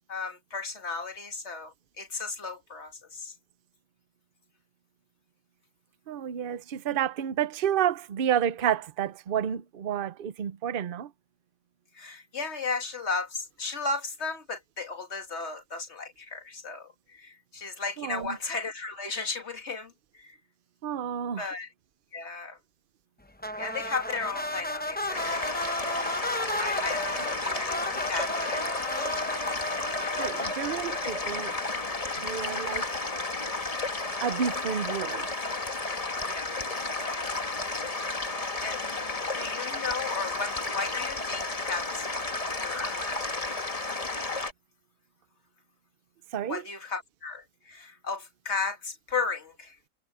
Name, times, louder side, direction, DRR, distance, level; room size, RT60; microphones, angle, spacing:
voice 1, 0.1-3.3 11.9-20.4 21.4-21.7 22.1-22.6 23.6-25.5 26.6-29.1 36.3-36.5 37.0-37.7 38.1-38.3 38.6-39.0 39.3-42.1 42.5-43.1 46.5-49.8, left 4 dB, 50° left, 2.2 m, -35 dB
voice 2, 6.1-11.1 18.0-18.4 20.8-21.5 30.2-31.5 32.2-32.9 34.2-35.3 46.3-46.6, right 9 dB, 50° right, 0.8 m, -30 dB
sound 1, 23.4-31.9, left 1 dB, 10° left, 0.7 m, -34 dB
sound 2, 25.1-44.5, left 3 dB, 25° left, 1.5 m, -32 dB
omnidirectional pair, 1.5 m